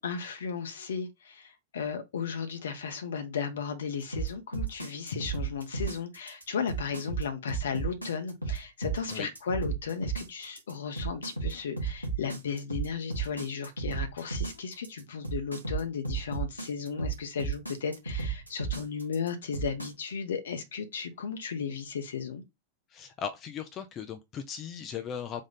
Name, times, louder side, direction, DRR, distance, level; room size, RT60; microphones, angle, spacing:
voice 1, 0.0-22.4, left 6 dB, 65° left, 0.9 m, -35 dB
sound 1, 4.1-19.9, right 5 dB, 90° left, 1.3 m, -33 dB
voice 2, 22.9-25.5, left 7 dB, 30° left, 0.5 m, -38 dB
3.7 x 2.4 x 4.0 m
figure-of-eight pair, 90°, 0 cm